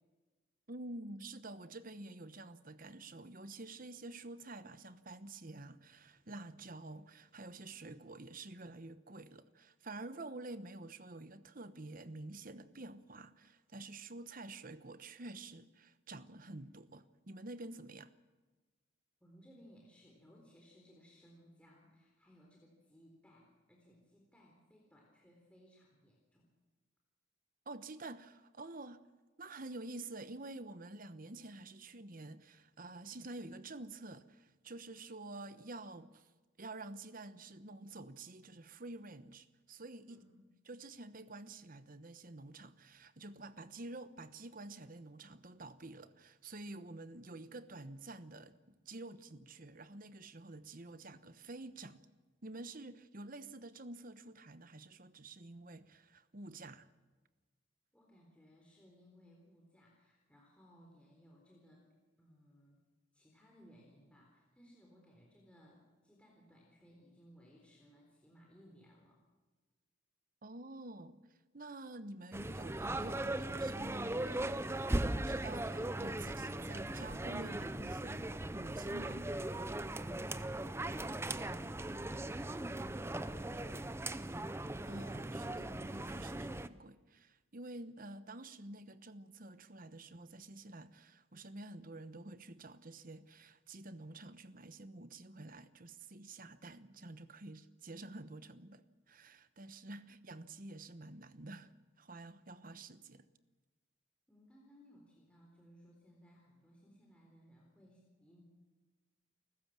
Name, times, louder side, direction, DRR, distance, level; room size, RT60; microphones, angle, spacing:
voice 1, 0.7-18.1 27.7-29.0 29.4-36.3 36.6-40.2 40.7-52.0 52.4-56.9 70.4-71.2 71.5-79.3 84.9-103.3, right 2 dB, 40° right, 1.0 m, -49 dB
voice 2, 19.2-26.5 40.1-40.4 57.9-61.8 62.2-62.8 63.1-69.2 81.0-84.3 100.0-100.2 104.3-108.4, equal, 5° left, 4.0 m, -62 dB
sound 1, 72.3-86.7, right 1 dB, 10° right, 0.6 m, -39 dB
29.0 x 15.0 x 7.5 m
head